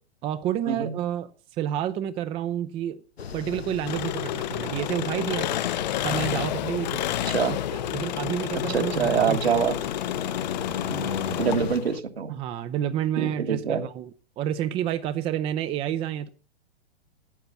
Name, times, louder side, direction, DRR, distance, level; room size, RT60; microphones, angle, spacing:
voice 1, 0.2-1.3 1.6-3.0 3.3-5.5 6.0-7.0 7.7-9.5 10.9-11.2 12.3-14.1 14.4-16.3, right 10 dB, 15° right, 0.6 m, -29 dB
sound 1, 3.2-11.8, left 6 dB, 65° left, 1.2 m, -35 dB
Engine, 3.9-12.0, left 13 dB, 45° left, 0.6 m, -30 dB
voice 2, 7.3-7.6 8.7-9.7 11.3-12.3 13.2-13.8, right 6 dB, 65° right, 1.9 m, -25 dB
12.0 x 8.9 x 6.9 m
figure-of-eight pair, 105°, 33 cm